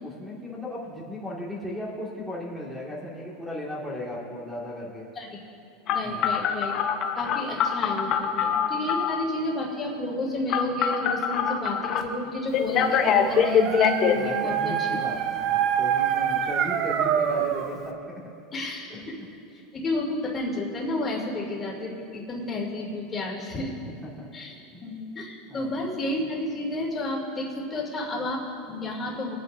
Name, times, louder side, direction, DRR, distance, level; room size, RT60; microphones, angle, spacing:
voice 1, 0.0-5.1 6.0-6.3 14.1-18.0 18.9-19.3 23.9-24.3 24.7-24.9 25.5-25.8, left 1 dB, 5° right, -4 dB, 2.1 m, -36 dB
Telephone, 5.9-9.2 10.5-12.0 12.5-14.1, left 8 dB, 40° left, 0.8 m, -23 dB
voice 2, 5.9-6.8 7.2-14.9 18.5-19.1 19.7-23.7 24.3-24.5 24.8-29.4, left 2 dB, 20° left, -2 dB, 2.8 m, -31 dB
Dog, 12.7-17.8, right 9 dB, 45° right, 0.8 m, -26 dB
23.5 x 9.5 x 2.7 m, 2.5 s
supercardioid pair, 135°, 0 cm